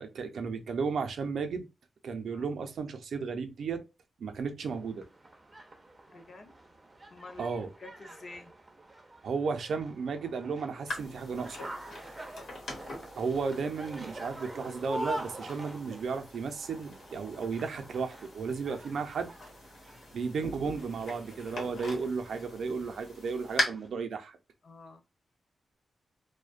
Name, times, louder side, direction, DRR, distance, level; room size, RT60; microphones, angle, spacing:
voice 1, 0.0-1.7 2.0-3.8 4.2-5.0 7.4-7.7 9.2-11.6 13.2-19.3 20.1-24.4, right 5 dB, 75° right, 0.4 m, -34 dB
sound 1, 4.7-23.9, right 1 dB, 20° right, 0.4 m, -46 dB
voice 2, 6.1-6.5 7.1-8.5 12.2-12.5 24.6-25.0, left 3 dB, 45° left, 0.5 m, -49 dB
sound 2, 10.9-23.6, left 1 dB, 75° left, 0.9 m, -41 dB
2.5 x 2.1 x 2.3 m
wide cardioid pair, 170°, 0 cm